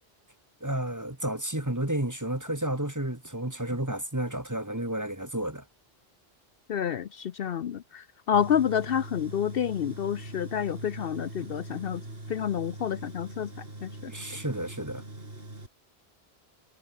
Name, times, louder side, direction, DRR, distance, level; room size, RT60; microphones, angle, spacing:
voice 1, 0.6-5.6 14.1-15.0, right 1 dB, 15° right, 2.2 m, -31 dB
voice 2, 6.7-12.0 12.3-13.5 13.8-13.9, left 8 dB, 65° left, 0.8 m, -29 dB
Tools, 8.3-15.7, right 2 dB, 60° right, 5.2 m, -42 dB
omnidirectional pair, 1.1 m